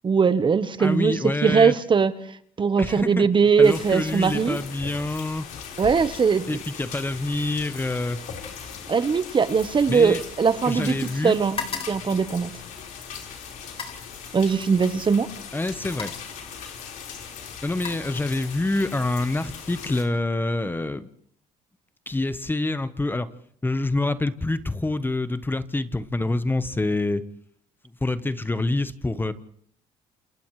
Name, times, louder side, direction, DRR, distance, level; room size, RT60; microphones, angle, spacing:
voice 1, 0.0-2.1 2.6-4.6 5.8-6.6 8.9-11.6 11.9-12.5 14.3-15.3, right 5 dB, 35° right, 13 dB, 1.1 m, -20 dB
voice 2, 0.8-1.7 2.8-3.3 3.6-5.5 6.5-8.2 9.9-10.2 10.7-11.3 15.5-16.1 17.6-21.1 22.1-23.3 23.6-27.2 28.0-29.3, left 2 dB, 15° left, 13 dB, 1.1 m, -26 dB
sound 1, 3.6-20.0, left 7 dB, 70° left, 4.5 m, -39 dB
sound 2, 8.1-10.9 11.1-13.0 13.6-14.1 15.1-15.3 15.7-16.4 17.3-18.7 19.0-19.4, left 5 dB, 40° left, 3.9 m, -39 dB
28.5 x 28.0 x 3.2 m, 0.62 s
supercardioid pair, 75°, 14 cm